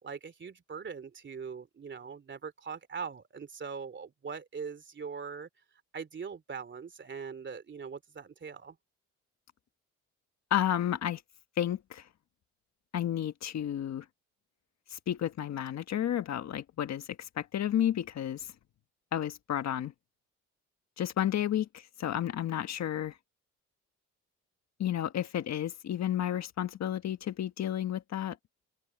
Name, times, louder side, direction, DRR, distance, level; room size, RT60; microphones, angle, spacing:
voice 1, 0.0-5.5 5.9-8.8, right 6 dB, 40° right, 2.9 m, -41 dB
voice 2, 10.5-11.2 11.6-12.1 12.9-14.0 14.9-18.5 19.1-19.9 21.0-23.2 24.8-28.4, left 11 dB, 60° left, 1.4 m, -31 dB
cardioid pair, 90°, 30 cm